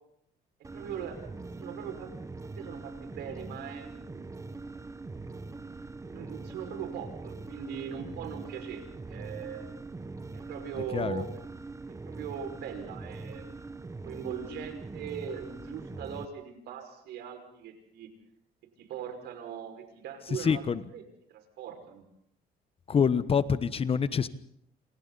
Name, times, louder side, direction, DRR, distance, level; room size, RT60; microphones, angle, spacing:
sound 1, 0.6-16.3, right 3 dB, 20° right, 1.4 m, -42 dB
voice 1, 0.7-1.3 1.6-2.1 2.4-4.5 6.1-9.7 10.3-11.3 12.0-13.7 14.0-18.1 18.8-20.6 20.9-21.0 21.3-22.1, right 8 dB, 80° right, 6 dB, 5.6 m, -40 dB
voice 2, 10.9-11.2 20.3-20.8 22.9-24.3, left 6 dB, 35° left, 14 dB, 1.2 m, -26 dB
28.0 x 27.5 x 4.1 m, 0.70 s
cardioid pair, 110°, 17 cm